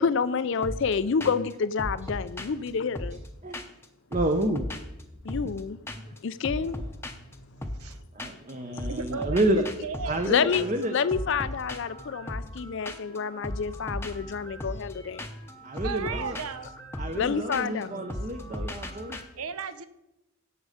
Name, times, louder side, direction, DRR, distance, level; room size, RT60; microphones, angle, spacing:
voice 1, 0.0-3.2 5.2-5.8 6.2-6.8 10.3-10.7 10.9-15.3 17.1-18.0, left 6 dB, 55° left, 15 dB, 0.4 m, -28 dB
sound 1, 0.6-0.9 1.2-1.5 1.8-3.9 4.1-5.6 5.9-6.2 6.4-8.5 8.8-19.2, left 1 dB, 10° left, 0.7 m, -37 dB
voice 2, 4.1-4.6 6.5-6.9 8.1-9.6 10.0-11.0 15.6-16.4 17.0-19.2, right 1 dB, 30° right, 5 dB, 0.7 m, -29 dB
voice 3, 8.9-10.2 15.8-16.7 19.4-19.9, right 5 dB, 80° right, 13 dB, 0.8 m, -35 dB
16.5 x 6.4 x 5.0 m, 0.92 s
head